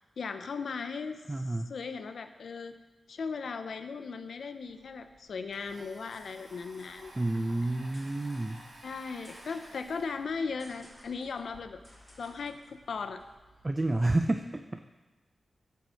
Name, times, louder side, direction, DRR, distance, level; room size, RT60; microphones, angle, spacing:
voice 1, 0.2-1.2 1.7-2.8 3.1-7.1 8.8-11.8 12.2-13.2, left 5 dB, 75° left, 9 dB, 0.7 m, -37 dB
voice 2, 1.3-1.7 7.1-8.6 13.6-14.8, right 2 dB, 20° right, 7 dB, 0.4 m, -29 dB
sound 1, 4.6-13.9, left 1 dB, ahead, 3.1 m, -59 dB
Domestic sounds home sounds, 4.6-4.7 5.0-11.6, right 1 dB, 60° right, 2.4 m, -53 dB
14.0 x 4.7 x 6.3 m, 1.2 s
wide cardioid pair, 170°, 0 cm